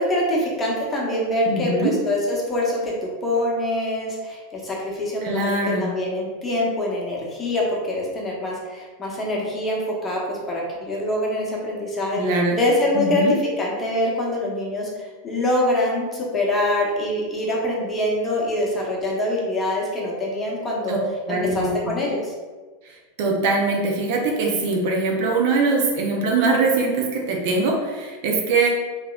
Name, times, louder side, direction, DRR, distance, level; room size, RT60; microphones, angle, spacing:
voice 1, 0.0-20.9 21.3-22.3, left 1 dB, 20° left, -3 dB, 0.8 m, -24 dB
voice 2, 1.5-1.9 5.2-5.9 12.2-12.6 12.9-13.3 20.9-21.0 21.3-22.0 23.2-28.7, right 3 dB, 50° right, 0 dB, 0.5 m, -22 dB
2.9 x 2.9 x 2.3 m, 1.3 s
figure-of-eight pair, 85°, 0 cm